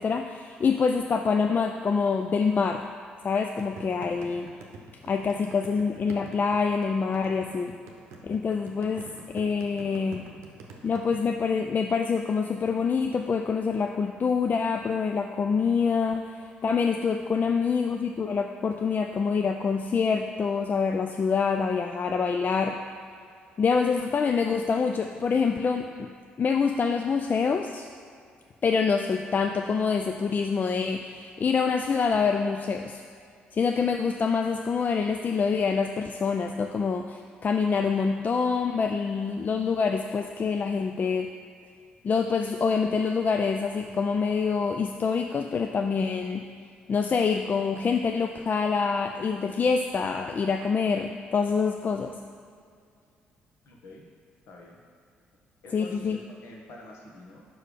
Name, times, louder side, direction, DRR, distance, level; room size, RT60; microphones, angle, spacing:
voice 1, 0.0-2.9 3.2-4.5 5.1-7.8 8.2-9.1 9.3-10.2 10.8-16.3 16.6-22.8 23.6-26.1 26.4-27.9 28.6-33.0 33.5-41.3 42.0-46.5 46.9-52.1 55.7-56.2, left 5 dB, 40° left, 4 dB, 0.3 m, -26 dB
sound 1, 3.6-11.2, right 4 dB, 70° right, 0.7 m, -45 dB
voice 2, 53.6-54.0 54.5-54.8 55.6-57.4, left 1 dB, 65° left, -1 dB, 1.2 m, -47 dB
5.4 x 4.8 x 5.1 m, 2.3 s
hypercardioid pair, 45°, 5 cm